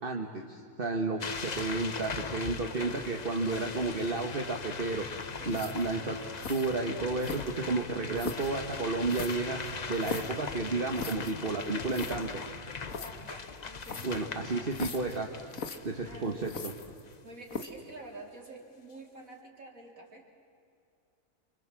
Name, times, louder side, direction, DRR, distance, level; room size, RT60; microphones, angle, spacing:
voice 1, 0.0-5.0 5.5-6.2 6.5-9.6 9.9-12.3 14.0-15.3 15.8-16.7, right 3 dB, 40° right, 2 dB, 1.8 m, -32 dB
sound 1, 1.2-17.1, left 5 dB, 35° left, 0.9 m, -40 dB
voice 2, 1.4-1.7 5.4-5.6 12.9-14.5 15.8-16.4 17.2-20.3, right 2 dB, 80° right, 0 dB, 4.3 m, -49 dB
sound 2, 5.5-5.9 6.4-6.7 7.2-7.7 8.2-8.5 9.1-10.4 11.0-11.3 11.6-11.7 11.9-12.2 12.9-13.1 13.8-14.2 14.7-15.2 15.5-15.8 16.5-17.1 17.5-17.8, left 5 dB, 80° left, 2.0 m, -39 dB
29.0 x 26.0 x 7.7 m, 2.5 s
omnidirectional pair, 1.4 m